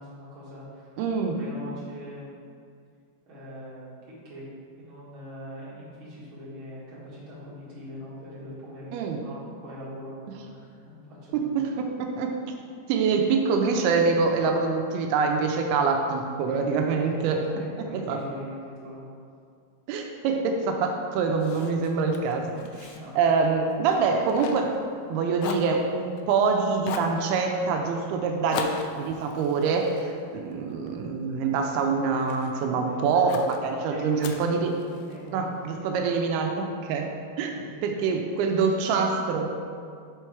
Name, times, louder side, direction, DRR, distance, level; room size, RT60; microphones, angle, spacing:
voice 1, 0.0-0.9 1.3-2.5 3.3-3.9 4.2-4.4 4.8-11.6 16.5-19.2 22.9-23.1 32.7-33.3 33.9-34.6 35.1-35.5 37.5-37.9, equal, 45° right, -8 dB, 1.9 m, -42 dB
voice 2, 1.0-1.4 8.9-9.2 11.3-12.4 12.9-17.4 17.8-18.2 19.9-24.8 25.1-28.7 29.0-34.8 35.3-37.1 37.4-37.5 37.8-39.6, right 4 dB, 85° right, 3 dB, 2.5 m, -25 dB
Fire, 21.4-25.1 25.4-26.4 26.8-27.2 28.5-30.9 31.4-32.6 33.3-33.6 34.2-35.3, left 6 dB, 90° left, 2.0 m, -39 dB
6.2 x 4.7 x 4.5 m, 2.2 s
omnidirectional pair, 4.6 m